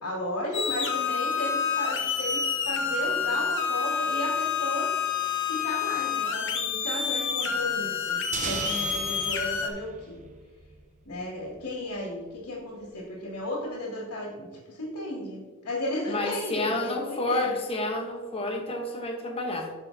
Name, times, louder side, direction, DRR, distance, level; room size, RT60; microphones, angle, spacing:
voice 1, 0.0-4.9 5.2-10.2 11.1-17.6, left 1 dB, 90° left, -4 dB, 2.3 m, -34 dB
sound 1, 0.5-9.7, left 6 dB, 55° left, 0.9 m, -28 dB
sound 2, 8.3-11.1, right 4 dB, 35° right, 0.8 m, -37 dB
voice 2, 16.1-19.7, left 2 dB, 25° left, 2 dB, 1.1 m, -30 dB
11.5 x 5.6 x 2.7 m, 1.4 s
head